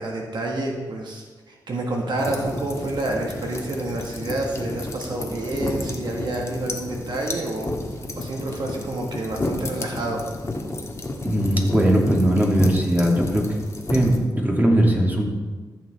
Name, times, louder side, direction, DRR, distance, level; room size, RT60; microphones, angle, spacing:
voice 1, 0.0-7.7 8.1-10.2, right 2 dB, 65° right, 0 dB, 1.5 m, -28 dB
sound 1, 2.2-14.2, left 2 dB, 35° left, 1.5 m, -31 dB
voice 2, 11.2-13.4 13.9-15.3, right 1 dB, 20° right, -2 dB, 2.4 m, -19 dB
14.5 x 6.6 x 3.4 m, 1.4 s
cardioid pair, 65°, 8 cm